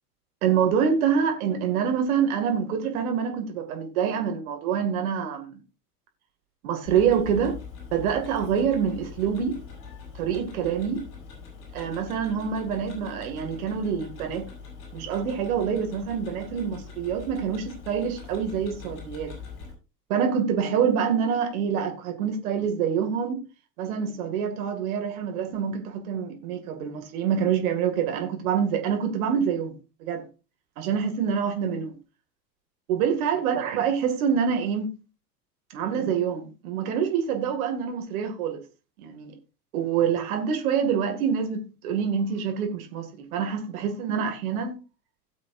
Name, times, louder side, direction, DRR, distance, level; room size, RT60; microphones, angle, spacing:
voice 1, 0.4-5.5 6.6-7.6 7.9-9.6 10.1-11.1 11.7-14.5 14.9-19.4 20.1-23.4 23.8-30.3 30.8-32.0 32.9-35.0 35.7-38.6 39.0-39.3 39.7-44.8, right 7 dB, 60° right, 2.3 m, -26 dB
Tick-tock, 6.9-19.7, left 5 dB, 45° left, 7.0 m, -43 dB
17.5 x 7.4 x 2.6 m
figure-of-eight pair, 80°, 48 cm